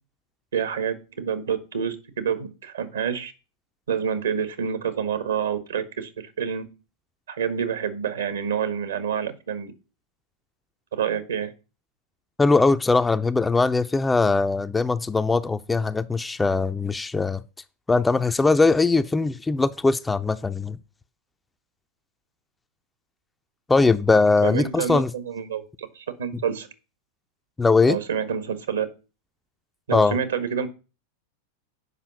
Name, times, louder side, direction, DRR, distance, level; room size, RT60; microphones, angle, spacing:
voice 1, 0.5-3.3 3.9-6.6 7.3-9.7 10.9-11.5 24.4-26.7 27.9-28.9 29.9-30.7, right 7 dB, 65° right, 1.5 m, -28 dB
voice 2, 12.4-17.4 17.9-20.8 23.7-25.1 27.6-28.0 29.9-30.2, left 3 dB, 10° left, 0.5 m, -20 dB
8.1 x 5.5 x 7.0 m
figure-of-eight pair, 90°, 0 cm